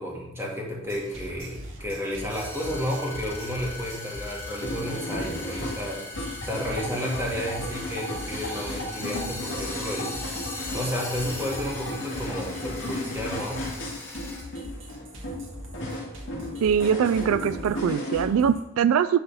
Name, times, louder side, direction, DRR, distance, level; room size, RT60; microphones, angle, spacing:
voice 1, 0.0-6.1 6.4-10.2 10.7-13.7, equal, 10° right, -3 dB, 1.9 m, -32 dB
sound 1, 0.8-18.6, equal, 65° right, 1.8 m, -42 dB
sound 2, 2.3-14.4, left 2 dB, 10° left, 1.2 m, -40 dB
sound 3, 4.6-18.2, left 1 dB, 55° left, 2.5 m, -35 dB
voice 2, 16.6-19.2, right 7 dB, 80° right, 15 dB, 0.3 m, -22 dB
10.5 x 4.1 x 5.5 m, 0.86 s
head